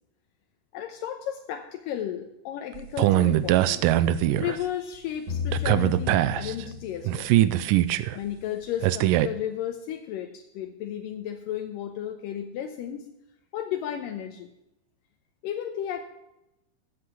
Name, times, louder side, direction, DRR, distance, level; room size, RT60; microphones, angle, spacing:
voice 1, 0.7-7.3 8.2-13.1 13.5-14.5 15.4-16.0, left 10 dB, 80° left, 4 dB, 2.5 m, -34 dB
sound 1, 2.8-4.6 5.5-6.6 7.1-8.2 8.8-9.3, right 14 dB, 80° right, 2.2 m, -22 dB
sound 2, 5.3-7.5, left 8 dB, 55° right, 4.5 m, -33 dB
14.0 x 7.8 x 6.1 m, 0.89 s
omnidirectional pair, 4.0 m